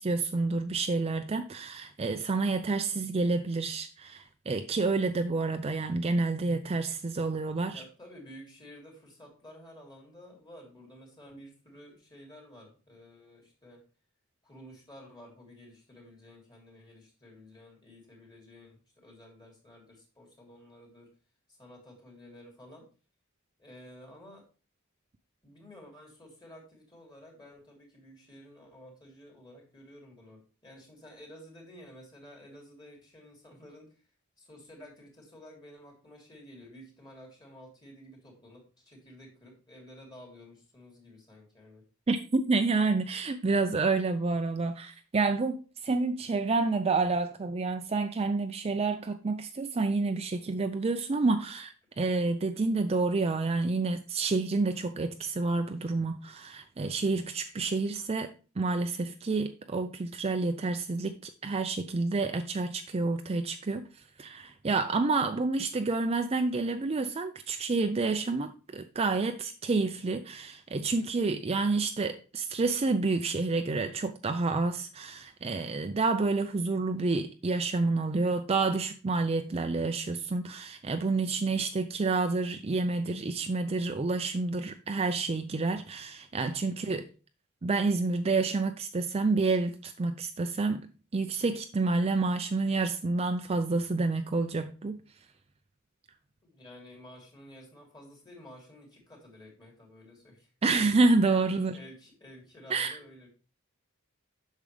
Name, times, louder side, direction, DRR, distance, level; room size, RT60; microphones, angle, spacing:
voice 1, 0.0-7.8 42.1-61.2 61.4-63.9 64.2-87.1 87.6-95.0 100.6-101.8 102.7-103.0, right 3 dB, 30° right, 0.4 m, -29 dB
voice 2, 7.7-13.8 14.4-21.1 21.5-22.9 23.6-24.4 25.4-33.9 34.4-41.8 86.8-87.0 96.4-100.5 101.7-103.3, equal, 20° left, 3.2 m, -52 dB
8.6 x 6.5 x 3.3 m
head